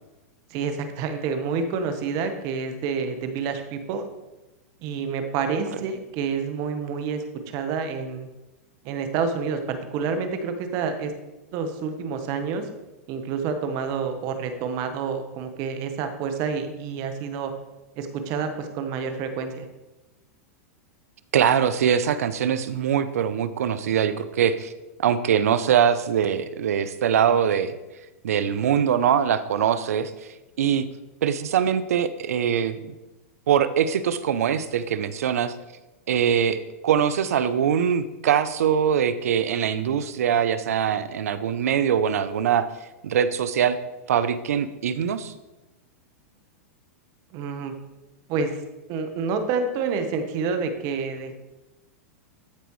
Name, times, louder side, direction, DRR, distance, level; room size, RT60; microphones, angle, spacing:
voice 1, 0.5-4.0 4.8-8.3 8.8-11.1 11.5-12.7 13.1-17.5 18.0-19.7 47.3-47.7 48.3-48.6 48.9-51.3, right 5 dB, 45° right, 7 dB, 1.1 m, -28 dB
voice 2, 21.3-24.7 25.0-27.7 28.2-30.1 30.6-30.8 31.2-32.8 33.5-35.5 36.1-42.7 43.0-43.8 44.1-45.3, right 8 dB, 80° right, 14 dB, 0.6 m, -22 dB
13.0 x 5.0 x 3.1 m, 1.0 s
hypercardioid pair, 120°, 8 cm